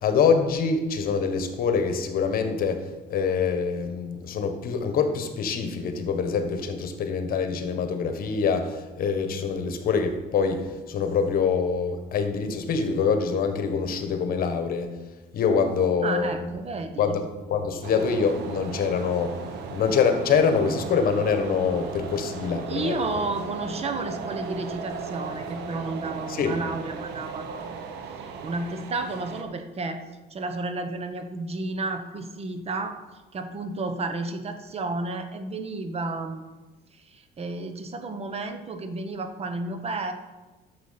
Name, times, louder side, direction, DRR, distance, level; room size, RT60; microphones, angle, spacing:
voice 1, 0.0-14.9 15.3-16.5 17.0-17.2 17.5-19.3 19.7-22.9 26.3-26.5, left 6 dB, 60° left, 7 dB, 1.4 m, -25 dB
voice 2, 16.0-17.2 22.6-30.0 30.3-36.5 36.9-40.1, right 3 dB, 35° right, 7 dB, 1.1 m, -32 dB
sound 1, 17.8-29.4, right 5 dB, 80° right, 1.2 m, -37 dB
10.0 x 7.1 x 5.8 m, 1.2 s
cardioid pair, 110°, 17 cm